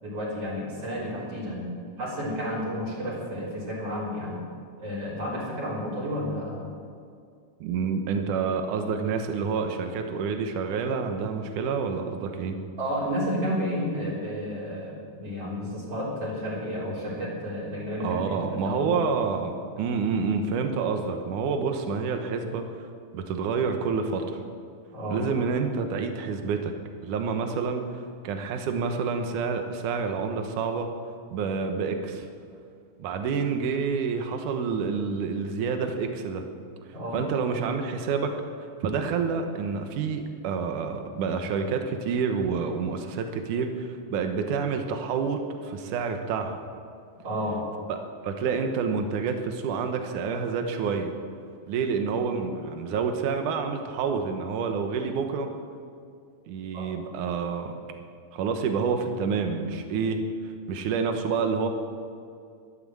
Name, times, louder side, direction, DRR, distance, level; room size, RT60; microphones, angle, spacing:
voice 1, 0.0-1.6 2.0-4.4 4.8-6.7 12.8-18.9 24.9-25.3 36.9-37.2 47.2-47.6 56.7-56.9, equal, 50° right, -6 dB, 4.9 m, -31 dB
voice 2, 7.6-12.6 18.0-22.9 23.1-24.4 25.1-26.7 27.0-30.9 31.3-32.3 33.0-36.5 37.1-38.4 38.8-46.6 47.9-48.0 48.2-51.1 51.7-55.5 56.5-57.8 58.3-61.7, right 5 dB, 75° right, 5 dB, 2.6 m, -28 dB
13.5 x 12.0 x 7.7 m, 2.3 s
omnidirectional pair, 3.7 m